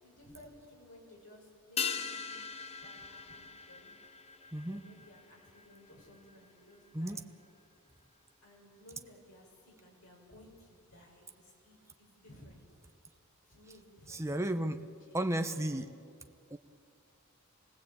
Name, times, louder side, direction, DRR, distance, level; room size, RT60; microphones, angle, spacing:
voice 1, 0.0-2.4 2.8-3.9 4.7-7.3 8.4-12.6 13.5-14.5 15.1-15.5, left 1 dB, 65° left, -2 dB, 7.0 m, -57 dB
sound 1, 1.8-6.5 6.7-6.8, left 7 dB, 30° left, 0.8 m, -41 dB
voice 2, 4.5-4.8 6.9-7.2 14.1-14.8 15.1-15.9 16.5-16.6, right 1 dB, 15° right, 7 dB, 1.0 m, -33 dB
27.5 x 18.0 x 8.8 m, 2.4 s
head